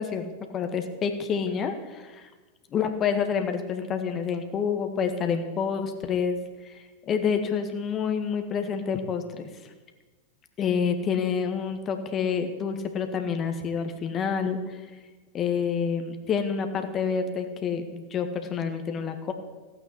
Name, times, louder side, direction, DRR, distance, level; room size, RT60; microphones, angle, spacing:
voice 1, 0.0-2.3 2.7-6.4 7.1-9.2 10.6-14.8 15.3-19.3, left 6 dB, 30° left, 7 dB, 1.8 m, -28 dB
16.5 x 9.0 x 8.5 m, 1.3 s
figure-of-eight pair, 90°, 0 cm